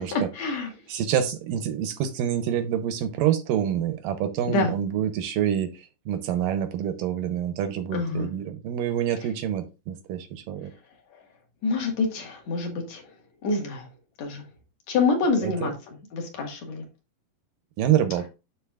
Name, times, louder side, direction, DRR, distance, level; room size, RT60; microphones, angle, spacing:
voice 1, 0.0-0.7 4.5-4.7 7.9-8.3 11.1-11.2 11.6-13.1 13.4-13.9 14.2-14.4 14.9-15.7 16.1-16.8, left 3 dB, 55° left, 2 dB, 2.5 m, -26 dB
voice 2, 0.9-10.7 15.4-15.7 17.8-18.3, right 10 dB, 80° right, 9 dB, 2.2 m, -27 dB
12.0 x 4.4 x 2.3 m, 0.29 s
omnidirectional pair, 4.2 m